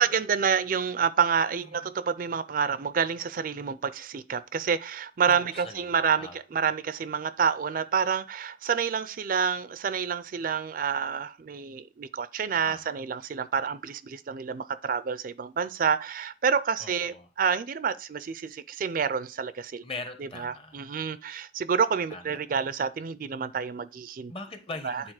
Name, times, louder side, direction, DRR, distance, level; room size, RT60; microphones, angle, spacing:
voice 1, 0.0-19.8 20.4-24.3 24.8-25.1, right 6 dB, 50° right, 0.4 m, -28 dB
voice 2, 5.3-6.4 12.6-12.8 16.8-17.3 19.8-20.9 22.1-22.6 24.3-25.1, left 3 dB, 30° left, 1.0 m, -41 dB
8.7 x 4.1 x 4.8 m
head